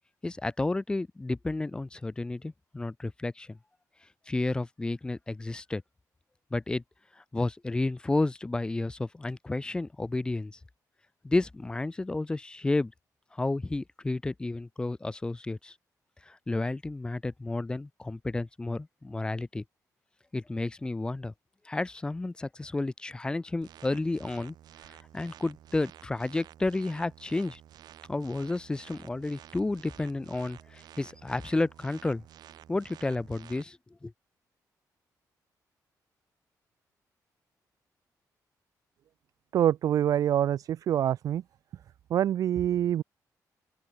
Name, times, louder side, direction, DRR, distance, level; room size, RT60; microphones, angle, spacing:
voice 1, 0.2-3.6 4.3-5.8 6.5-6.8 7.3-10.6 11.2-12.9 13.4-15.7 16.3-19.6 20.3-21.3 21.7-24.5 25.1-27.6 28.1-32.2 32.7-33.8 34.0-34.1, left 2 dB, 15° left, 0.7 m, -31 dB
sound 1, 23.6-33.6, right 12 dB, 85° right, 3.9 m, -52 dB
voice 2, 39.5-41.4 42.1-43.0, right 10 dB, 60° right, 0.4 m, -25 dB
open air
wide cardioid pair, 160°, 7 cm